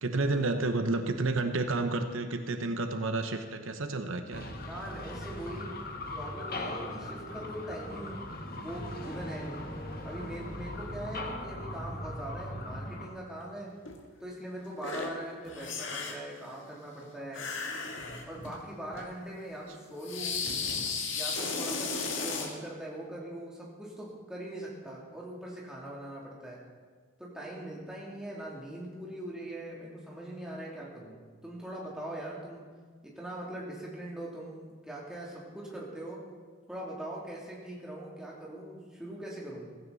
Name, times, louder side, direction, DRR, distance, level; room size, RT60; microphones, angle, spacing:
voice 1, 0.0-4.6, right 2 dB, 75° right, 7 dB, 0.9 m, -30 dB
sound 1, 4.3-13.1, left 1 dB, 45° left, 1.5 m, -39 dB
voice 2, 4.7-8.3 8.6-9.6 10.0-13.8 14.2-17.5 18.3-20.4 21.1-26.6 27.2-32.7 33.0-36.2 36.7-39.7, right 1 dB, 5° right, -5 dB, 2.9 m, -41 dB
sound 2, 13.9-14.0 14.8-15.1 15.4-16.3 17.3-18.6 18.9-19.1 20.0-22.5, left 4 dB, 65° left, 1.8 m, -34 dB
15.5 x 15.5 x 4.1 m, 1.5 s
head